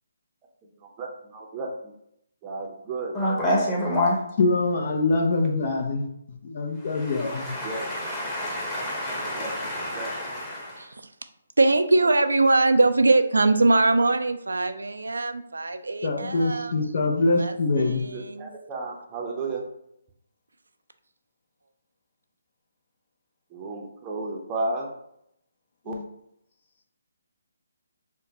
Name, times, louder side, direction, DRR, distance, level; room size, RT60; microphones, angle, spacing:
voice 1, 1.0-1.9 2.4-3.2 7.6-7.9 9.3-10.1 18.1-19.7 23.5-24.9 25.8-25.9, right 3 dB, 20° right, -1 dB, 0.6 m, -33 dB
voice 2, 3.1-4.2 7.2-10.8, left 1 dB, 10° left, -6 dB, 1.1 m, -27 dB
voice 3, 4.4-6.1 6.4-7.5 16.0-18.0 25.9-26.0, left 3 dB, 50° left, 3 dB, 0.6 m, -24 dB
voice 4, 11.6-16.9 17.4-18.5, right 2 dB, 85° right, 8 dB, 0.3 m, -22 dB
4.9 x 2.2 x 2.8 m, 0.75 s
figure-of-eight pair, 150°, 0 cm